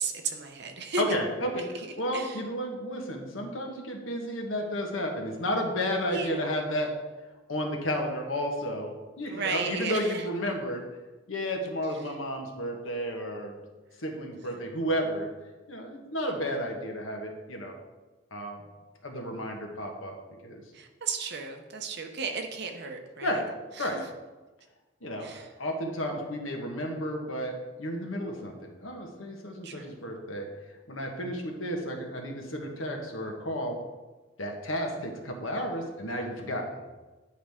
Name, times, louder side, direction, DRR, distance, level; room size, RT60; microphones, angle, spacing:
voice 1, 0.0-1.0 2.1-2.4 6.1-6.5 9.3-10.2 14.5-14.6 20.7-23.4 23.8-23.9 25.2-25.5 29.6-30.0, right 5 dB, 55° right, 5 dB, 0.9 m, -34 dB
voice 2, 1.0-1.6 2.0-6.9 7.5-10.8 11.3-13.6 14.0-15.3 15.7-17.8 18.3-18.6 19.0-20.2 20.4-20.6 23.2-23.5 23.8-24.0 25.0-30.5 30.9-33.8 34.4-36.7, equal, 85° left, 2 dB, 1.3 m, -32 dB
9.8 x 4.8 x 3.6 m, 1.2 s
head